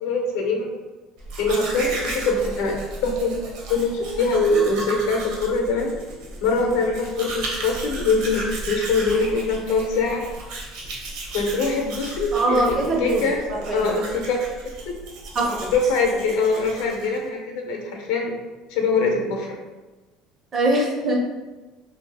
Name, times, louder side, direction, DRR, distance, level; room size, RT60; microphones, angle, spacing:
voice 1, 0.0-0.7 1.4-5.9 6.4-10.2 11.3-13.4 13.7-14.5 14.8-15.0 15.7-18.3 18.7-19.6, left 3 dB, 75° left, 1 dB, 0.7 m, -23 dB
Domestic sounds home sounds, 1.2-17.3, right 2 dB, 60° right, 0.7 m, -35 dB
voice 2, 12.3-13.9 15.4-15.7 20.5-21.2, right 2 dB, 25° right, 0 dB, 0.4 m, -23 dB
2.7 x 2.4 x 3.4 m, 1.2 s
cardioid pair, 170°, 0 cm